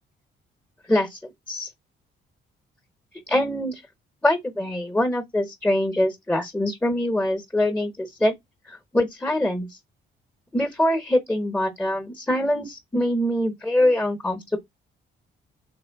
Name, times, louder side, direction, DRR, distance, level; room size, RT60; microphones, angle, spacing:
voice 1, 0.9-1.7 3.3-3.8 4.2-8.3 8.7-9.7 10.5-14.6, left 1 dB, 10° left, 1.0 m, -24 dB
3.4 x 3.3 x 4.5 m
cardioid pair, 90°, 20 cm